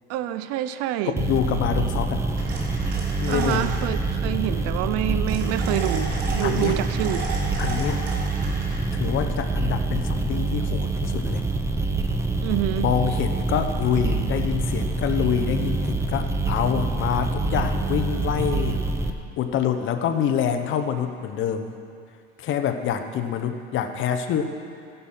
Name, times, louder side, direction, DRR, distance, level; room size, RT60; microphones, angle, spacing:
voice 1, 0.1-1.2 3.3-7.3 12.4-12.9, right 13 dB, 55° right, 12 dB, 0.6 m, -27 dB
voice 2, 1.1-2.2 3.2-3.7 6.4-6.8 7.6-8.0 8.9-11.4 12.8-18.8 19.4-21.7 22.4-24.6, left 8 dB, 40° left, 7 dB, 1.0 m, -26 dB
sound 1, 1.2-19.1, right 3 dB, 10° right, 0.7 m, -26 dB
sound 2, 2.4-3.9 5.3-8.8, right 3 dB, 75° right, 3.5 m, -35 dB
14.0 x 11.0 x 5.7 m, 2.4 s
supercardioid pair, 125°, 30 cm